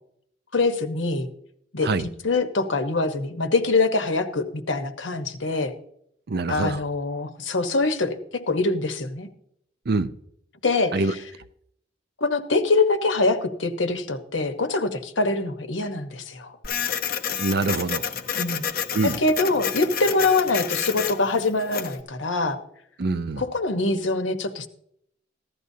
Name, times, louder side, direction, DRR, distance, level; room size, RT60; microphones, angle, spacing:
voice 1, 0.5-1.3 1.7-5.7 6.5-9.3 10.6-11.0 12.2-16.5 18.4-18.7 19.0-22.6 23.4-24.7, left 3 dB, 85° left, 8 dB, 1.1 m, -24 dB
voice 2, 6.3-6.8 9.9-10.1 10.9-11.1 17.4-18.0 18.9-19.2 23.0-23.4, right 3 dB, 55° right, 13 dB, 0.5 m, -24 dB
Printer, 16.6-22.0, left 8 dB, 50° left, 0.8 m, -29 dB
15.5 x 12.0 x 2.8 m, 0.72 s
head